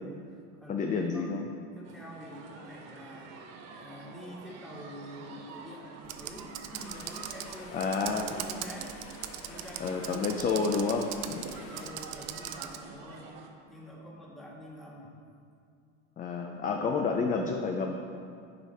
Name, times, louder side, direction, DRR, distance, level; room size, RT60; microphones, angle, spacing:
voice 1, 0.0-3.4 3.8-9.0 9.4-10.9 11.2-13.3 13.7-15.1 17.8-17.9, equal, ahead, -4 dB, 1.5 m, -47 dB
voice 2, 0.7-1.4 7.7-8.3 9.8-11.4 16.2-17.9, left 4 dB, 25° left, 2 dB, 0.5 m, -29 dB
sound 1, 1.8-13.5, right 4 dB, 50° right, 0.9 m, -48 dB
Computer keyboard, 6.0-12.8, right 12 dB, 70° right, 0.6 m, -41 dB
sound 2, 6.8-11.9, left 6 dB, 85° left, 0.8 m, -51 dB
9.9 x 4.7 x 4.4 m, 2.4 s
supercardioid pair, 115°, 33 cm